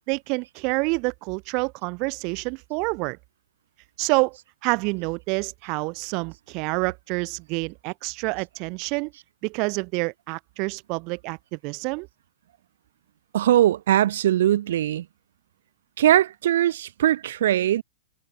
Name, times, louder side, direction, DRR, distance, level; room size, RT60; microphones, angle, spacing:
voice 1, 0.1-3.2 4.0-4.4 4.6-9.1 9.4-12.1, right 30 dB, 35° right, 1.4 m, -27 dB
voice 2, 13.3-15.0 16.0-17.8, right 12 dB, 65° right, 1.2 m, -20 dB
hypercardioid pair, 155°, 0 cm